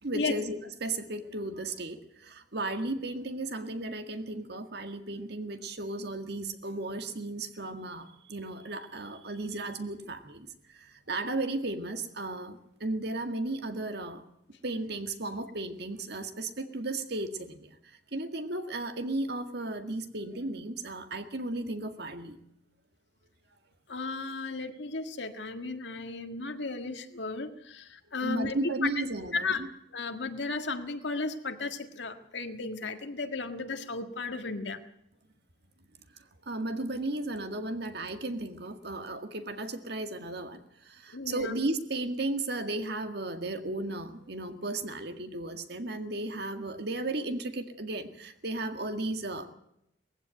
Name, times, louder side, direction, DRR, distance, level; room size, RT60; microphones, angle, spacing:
voice 1, 0.0-14.2 14.6-22.4 28.2-29.7 36.5-49.5, right 2 dB, 60° right, 7 dB, 1.9 m, -35 dB
voice 2, 23.9-28.6 29.3-29.6 29.9-34.8 41.1-41.6, left 3 dB, 65° left, 7 dB, 1.8 m, -34 dB
19.5 x 15.5 x 9.1 m, 0.80 s
head